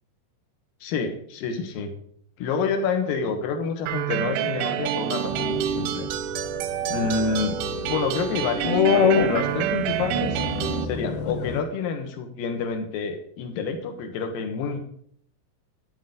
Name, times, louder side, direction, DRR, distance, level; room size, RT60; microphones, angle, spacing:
voice 1, 0.8-1.9 2.4-6.1 6.9-10.4 10.8-14.8, left 5 dB, 70° left, 5 dB, 2.2 m, -28 dB
sound 1, 3.9-10.9, right 11 dB, 85° right, 2.8 m, -28 dB
sound 2, 5.3-11.6, left 6 dB, 90° left, 2.2 m, -26 dB
13.0 x 10.0 x 3.9 m, 0.62 s
omnidirectional pair, 5.8 m